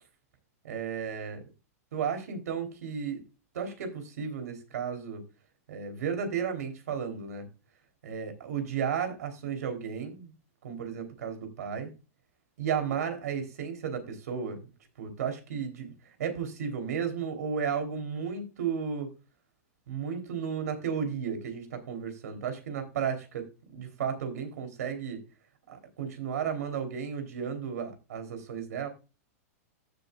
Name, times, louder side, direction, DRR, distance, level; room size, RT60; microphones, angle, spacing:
voice 1, 0.6-1.4 1.9-3.2 3.5-5.2 5.7-7.5 8.0-10.3 10.6-11.9 12.6-14.6 15.0-15.9 16.2-19.1 19.9-23.5 23.7-25.2 25.7-28.9, right 7 dB, 85° right, 3.4 m, -33 dB
15.0 x 7.6 x 2.4 m
supercardioid pair, 160°, 8 cm